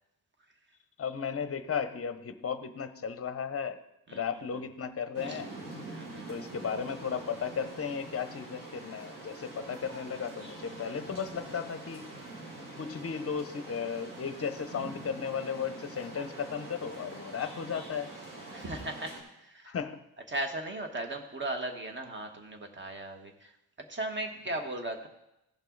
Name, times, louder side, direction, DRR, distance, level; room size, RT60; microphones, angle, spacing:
voice 1, 1.0-3.8 4.1-5.5 6.3-12.1 12.8-18.1 19.6-20.0 24.5-24.6, left 6 dB, 35° left, 11 dB, 0.7 m, -35 dB
sound 1, 5.1-19.2, right 2 dB, 55° right, 2.7 m, -45 dB
voice 2, 5.9-6.3 18.5-19.8 20.3-23.5 23.8-25.1, right 2 dB, 30° right, 5 dB, 1.3 m, -37 dB
15.5 x 5.4 x 3.9 m, 0.87 s
cardioid pair, 125°, 39 cm